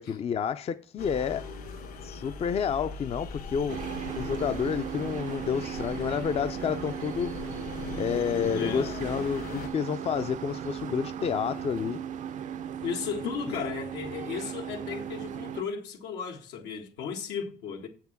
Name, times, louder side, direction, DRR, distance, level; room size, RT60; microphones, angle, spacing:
voice 1, 0.0-1.5 2.0-3.9 4.1-7.3 8.0-12.0 13.5-13.6, left 7 dB, 35° left, 0.5 m, -30 dB
sound 1, 1.0-9.7, left 5 dB, 65° left, 2.7 m, -40 dB
sound 2, 3.7-15.6, right 9 dB, 50° right, 0.5 m, -37 dB
voice 2, 8.5-8.9 12.8-17.9, left 6 dB, 90° left, 1.7 m, -35 dB
7.4 x 5.9 x 7.2 m
cardioid pair, 110°, 17 cm